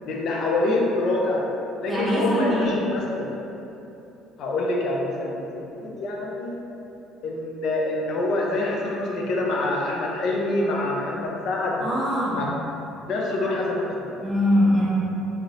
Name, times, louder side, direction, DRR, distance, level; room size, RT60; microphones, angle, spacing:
voice 1, 0.1-1.4 1.8-3.3 4.4-6.6 7.2-11.8 12.3-12.5 13.1-14.1, left 2 dB, 55° left, -2 dB, 0.5 m, -26 dB
voice 2, 1.9-2.7 11.8-12.5 14.2-14.9, equal, 10° right, -8 dB, 0.7 m, -22 dB
2.7 x 2.5 x 3.0 m, 2.9 s
cardioid pair, 145°, 0 cm